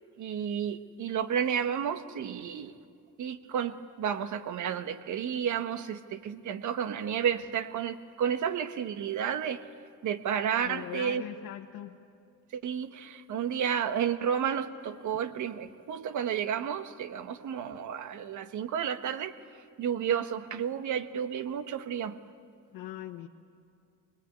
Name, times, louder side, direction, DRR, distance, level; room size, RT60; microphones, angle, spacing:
voice 1, 0.2-2.8 3.2-9.6 10.0-11.2 12.5-19.3 19.8-22.1, right 8 dB, 60° right, 10 dB, 1.3 m, -31 dB
voice 2, 10.6-12.0 22.7-23.3, left 12 dB, 70° left, 1 dB, 1.3 m, -41 dB
24.5 x 20.5 x 9.7 m, 2.4 s
cardioid pair, 120°, 34 cm